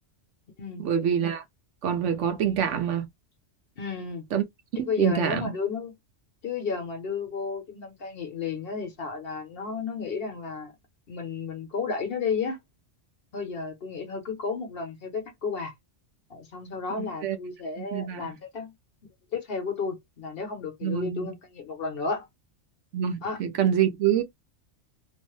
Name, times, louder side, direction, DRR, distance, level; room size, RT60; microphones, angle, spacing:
voice 1, 0.8-1.4 1.8-3.1 4.3-4.4 4.8-5.5 17.0-17.4 17.8-18.3 20.8-21.3 22.9-24.2, right 9 dB, 75° right, 1.0 m, -26 dB
voice 2, 3.8-4.3 4.8-5.9 6.4-10.7 11.1-12.6 13.3-15.7 16.3-18.7 19.3-22.3 23.2-23.4, left 5 dB, 55° left, 0.9 m, -32 dB
3.0 x 2.0 x 3.1 m
omnidirectional pair, 1.2 m